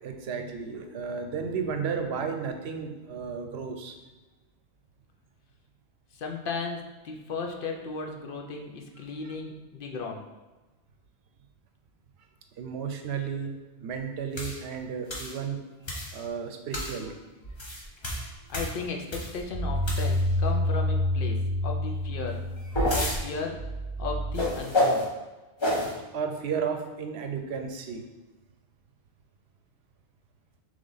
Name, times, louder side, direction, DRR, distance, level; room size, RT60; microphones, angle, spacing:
voice 1, 0.0-3.9 9.2-9.4 12.6-15.6 16.1-17.2 26.1-28.0, right 6 dB, 90° right, 5 dB, 0.8 m, -33 dB
voice 2, 6.2-10.2 18.5-22.4 22.9-23.6 24.0-25.1, left 4 dB, 65° left, 2 dB, 0.7 m, -35 dB
sound 1, 14.3-14.6 15.1-15.4 15.8-16.2 16.7-17.0 17.4-19.4 19.8-20.4 22.3-23.2 24.3-25.0 25.6-25.9, left 1 dB, 30° left, 0.7 m, -28 dB
sound 2, 19.5-24.6, left 1 dB, 40° right, 0.5 m, -29 dB
3.5 x 3.3 x 3.9 m, 1.2 s
omnidirectional pair, 1.0 m